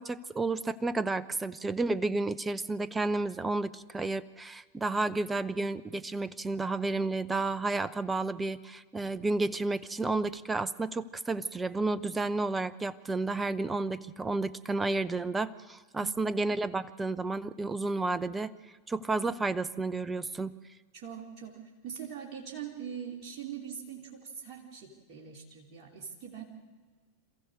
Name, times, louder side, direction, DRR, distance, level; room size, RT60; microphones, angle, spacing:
voice 1, 0.0-18.5 18.9-20.5, right 3 dB, 10° right, 18 dB, 0.7 m, -31 dB
voice 2, 16.0-16.4 20.9-21.6 21.8-26.4, right 8 dB, 35° right, 0 dB, 3.0 m, -42 dB
27.5 x 15.0 x 6.5 m, 1.4 s
figure-of-eight pair, 90°, 0 cm